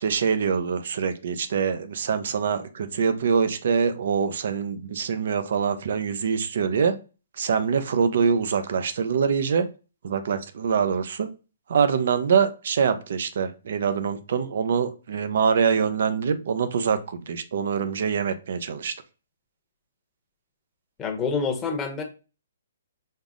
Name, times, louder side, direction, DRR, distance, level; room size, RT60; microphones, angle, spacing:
voice 1, 0.0-6.9 7.4-9.7 10.0-11.3 11.7-18.9, right 6 dB, 65° right, 0.5 m, -24 dB
voice 2, 21.0-22.0, left 5 dB, 15° left, 0.9 m, -27 dB
5.3 x 2.0 x 3.6 m
hypercardioid pair, 150°, 0 cm